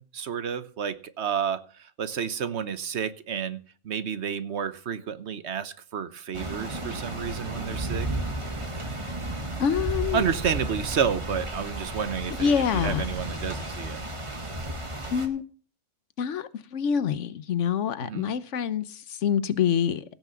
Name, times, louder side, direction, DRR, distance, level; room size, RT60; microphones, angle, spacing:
voice 1, 0.0-8.1 10.1-14.0 18.0-18.3, right 7 dB, 60° right, 13 dB, 1.1 m, -30 dB
sound 1, 6.3-15.3, right 1 dB, 25° right, 1.6 m, -33 dB
voice 2, 9.6-10.3 12.3-13.1 15.1-15.4 16.2-20.0, left 7 dB, 65° left, 15 dB, 1.2 m, -26 dB
16.5 x 6.0 x 6.9 m, 0.43 s
omnidirectional pair, 1.4 m